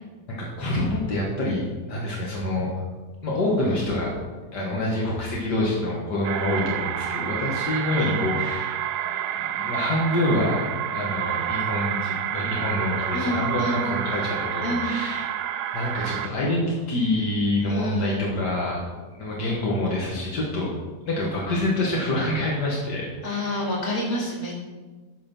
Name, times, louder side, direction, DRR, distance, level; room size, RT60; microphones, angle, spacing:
voice 1, 0.3-1.6 1.9-2.7 3.2-4.1 4.5-8.7 9.0-15.3 15.7-18.8 19.2-20.7 21.1-23.7, left 1 dB, 85° left, -4 dB, 2.1 m, -26 dB
sound 1, 6.2-16.3, right 10 dB, 80° right, 1.1 m, -29 dB
voice 2, 13.1-13.9 14.6-15.0 17.7-18.2 23.2-24.5, left 1 dB, 60° left, -3 dB, 2.7 m, -28 dB
9.1 x 5.7 x 5.9 m, 1.3 s
omnidirectional pair, 1.8 m